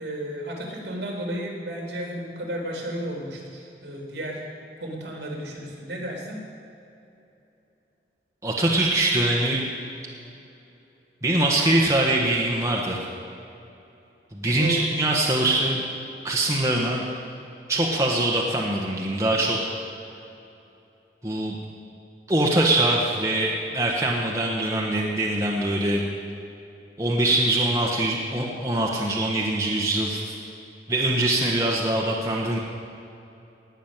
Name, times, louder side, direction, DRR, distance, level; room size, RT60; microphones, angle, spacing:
voice 1, 0.0-4.4 4.8-6.4 14.5-14.8, equal, 65° right, 0 dB, 3.5 m, -33 dB
voice 2, 8.4-9.6 11.2-13.0 14.3-15.8 16.2-17.0 17.7-19.7 21.2-21.6 22.3-26.0 27.0-30.4 30.9-32.6, right 1 dB, 15° right, -3 dB, 1.3 m, -23 dB
19.0 x 6.3 x 9.0 m, 2.8 s
head